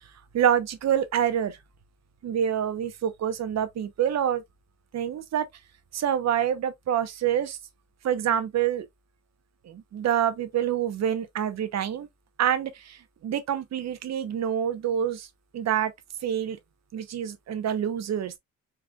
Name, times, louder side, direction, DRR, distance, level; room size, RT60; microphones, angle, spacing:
voice 1, 0.3-1.6 2.2-4.4 4.9-5.4 5.9-7.6 8.0-8.8 9.6-12.1 12.4-15.3 15.5-15.9 16.2-16.6 16.9-18.3, right 9 dB, 60° right, 1.0 m, -26 dB
4.5 x 3.6 x 2.4 m
cardioid pair, 90°, 30 cm